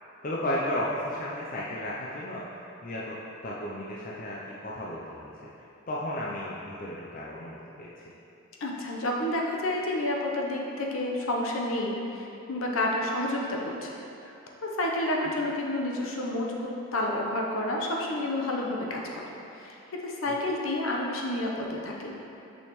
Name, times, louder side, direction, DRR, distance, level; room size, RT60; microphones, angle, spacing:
voice 1, 0.2-3.2 3.4-5.3 5.9-8.1 20.3-20.4, left 1 dB, 40° left, -5 dB, 0.5 m, -34 dB
voice 2, 8.6-14.0 14.6-22.1, left 1 dB, 65° left, -1 dB, 0.8 m, -30 dB
6.4 x 5.9 x 3.1 m, 2.9 s
head